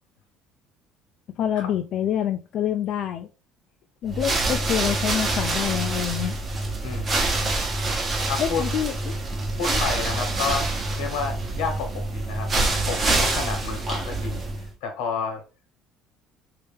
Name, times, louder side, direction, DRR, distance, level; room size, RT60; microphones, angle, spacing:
voice 1, 1.4-3.3 4.0-6.3 8.4-9.1 9.7-9.8, left 10 dB, 50° left, 0.3 m, -26 dB
sound 1, 4.0-14.7, right 2 dB, 30° right, 1.0 m, -26 dB
voice 2, 6.8-7.5 8.3-8.6 9.6-10.7 11.0-12.5 12.8-14.5 14.8-15.4, left 5 dB, 85° left, 1.1 m, -30 dB
3.3 x 2.8 x 3.5 m
cardioid pair, 130°, 0 cm